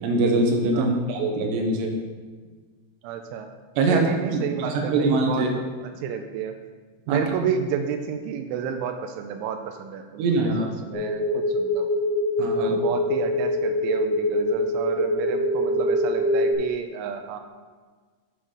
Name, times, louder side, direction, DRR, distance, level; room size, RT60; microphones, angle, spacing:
voice 1, 0.0-2.0 3.8-5.5 7.1-7.2 10.2-10.7 12.4-12.8, right 2 dB, 70° right, 2 dB, 3.2 m, -23 dB
voice 2, 3.0-3.5 3.8-6.5 7.1-11.9 12.5-17.4, right 7 dB, 90° right, 6 dB, 3.1 m, -31 dB
sound 1, 10.9-16.5, left 1 dB, 15° left, 1.5 m, -24 dB
7.9 x 7.2 x 4.9 m, 1.5 s
omnidirectional pair, 5.4 m